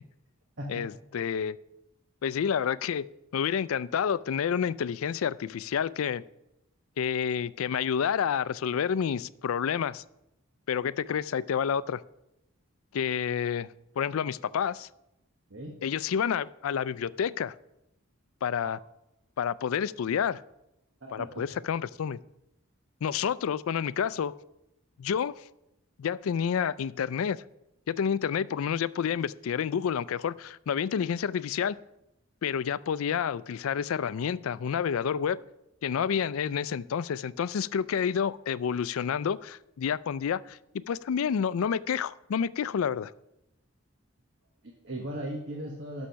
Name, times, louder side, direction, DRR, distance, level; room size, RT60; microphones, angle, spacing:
voice 1, 0.7-1.6 2.2-3.1 3.3-6.2 7.0-10.0 10.7-12.0 12.9-13.7 14.0-14.9 15.8-17.5 18.4-18.8 19.4-20.4 21.1-22.2 23.0-24.3 25.0-25.4 26.0-27.4 27.9-31.8 32.4-35.4 35.8-40.6 40.9-43.1, left 7 dB, 80° left, 19 dB, 0.4 m, -29 dB
voice 2, 21.0-21.4 44.6-46.1, right 1 dB, 60° right, 1 dB, 1.1 m, -37 dB
11.5 x 6.3 x 5.7 m, 0.87 s
head